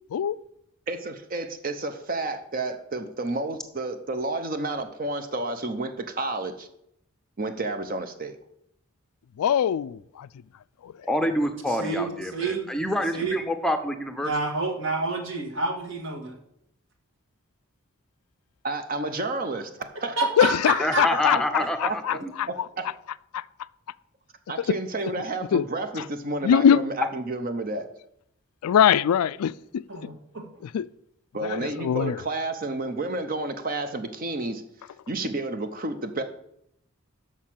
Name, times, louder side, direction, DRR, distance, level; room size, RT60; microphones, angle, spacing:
voice 1, 0.9-6.7 7.4-8.4 18.6-19.7 20.0-20.2 21.6-22.8 24.5-27.9 31.3-34.6 35.1-36.2, right 2 dB, 40° right, 0.7 m, -31 dB
voice 2, 9.4-10.0 20.4-21.4 21.8-22.5 25.5-25.6 26.4-26.8 28.6-29.8 30.7-30.8 31.5-32.1, left 8 dB, 90° left, 0.3 m, -21 dB
voice 3, 11.1-14.3 20.8-22.2, left 1 dB, ahead, 0.7 m, -27 dB
voice 4, 11.7-12.7 13.1-13.4 14.2-16.3 20.2-21.1 22.2-22.3 29.9-30.4, right 3 dB, 60° right, 1.7 m, -28 dB
6.5 x 6.1 x 7.4 m
head